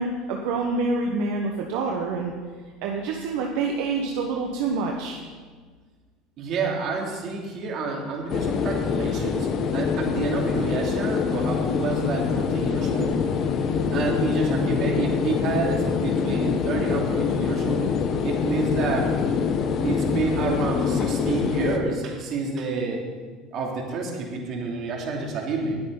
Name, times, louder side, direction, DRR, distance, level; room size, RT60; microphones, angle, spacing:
voice 1, 0.0-2.3 2.8-5.2, right 3 dB, 75° right, 1 dB, 1.3 m, -27 dB
voice 2, 6.4-13.2 13.9-17.9 18.2-19.1 19.8-23.0 23.5-25.8, right 4 dB, 50° right, 0 dB, 3.0 m, -29 dB
sound 1, 8.3-21.8, left 6 dB, 45° left, 1.2 m, -25 dB
19.5 x 8.3 x 4.1 m, 1.5 s
supercardioid pair, 110°, 0 cm